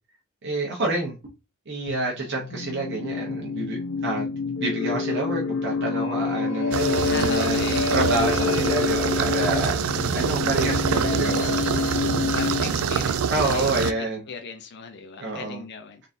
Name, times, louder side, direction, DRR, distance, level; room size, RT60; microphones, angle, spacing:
voice 1, 0.4-1.1 1.7-4.2 4.6-7.6 7.9-11.5 13.3-14.2 15.2-15.6, right 2 dB, 55° right, 1.0 m, -28 dB
sound 1, 1.9-13.2, left 4 dB, 85° left, 0.7 m, -27 dB
sound 2, 6.7-13.9, right 7 dB, 75° right, 0.4 m, -26 dB
voice 2, 7.0-7.9 12.3-16.0, left 5 dB, 55° left, 0.5 m, -37 dB
3.9 x 3.6 x 2.7 m
head